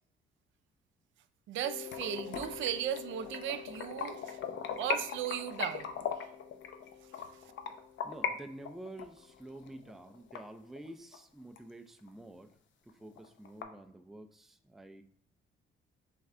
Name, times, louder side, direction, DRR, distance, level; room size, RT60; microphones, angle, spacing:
voice 1, 1.5-4.4 4.8-5.9, right 10 dB, 75° right, 11 dB, 0.4 m, -36 dB
Mallet percussion, 1.6-10.2, left 9 dB, 35° left, 0.7 m, -51 dB
sound 1, 1.9-8.3 8.6-11.2 11.6-11.7 12.1-12.2 12.5-12.6 12.9-13.6, left 7 dB, 70° left, 0.6 m, -39 dB
voice 2, 8.0-12.5 12.8-15.0, right 1 dB, ahead, 8 dB, 0.3 m, -49 dB
3.4 x 3.2 x 3.6 m, 0.65 s
cardioid pair, 90°, 20 cm